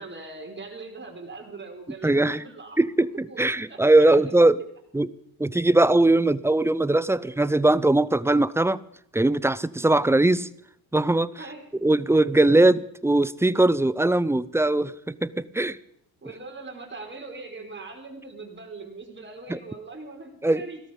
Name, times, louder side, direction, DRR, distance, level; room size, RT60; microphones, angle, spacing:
voice 1, 0.0-2.8 3.3-3.4 3.7-4.5 11.4-11.7 16.2-20.8, right 3 dB, 25° right, 2 dB, 5.1 m, -41 dB
voice 2, 2.0-2.4 2.8-4.6 4.9-5.1 5.4-8.8 9.1-10.5 10.9-11.3 11.8-15.8 19.5-19.6 20.4-20.6, right 2 dB, 5° right, 19 dB, 0.5 m, -20 dB
17.0 x 13.5 x 5.4 m, 0.72 s
supercardioid pair, 85°, 44 cm